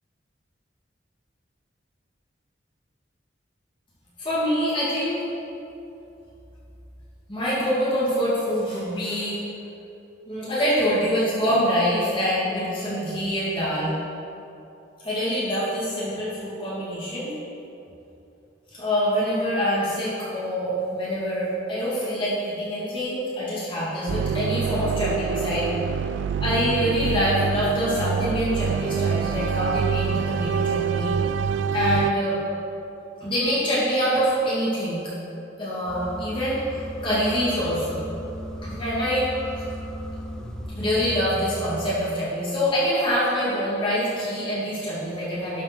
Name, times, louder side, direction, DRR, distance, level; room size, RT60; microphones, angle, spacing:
voice 1, 4.2-5.2 7.3-9.4 10.3-13.9 15.0-17.3 18.7-25.7 26.4-31.2 31.7-32.4 33.2-35.0 35.6-38.0 38.6-39.3 40.7-45.6, equal, 30° left, -9 dB, 2.6 m, -25 dB
sound 1, 24.1-32.1, right 7 dB, 85° right, 0.3 m, -26 dB
sound 2, 35.9-42.0, equal, 5° left, 0.7 m, -36 dB
11.5 x 5.4 x 6.3 m, 2.8 s
head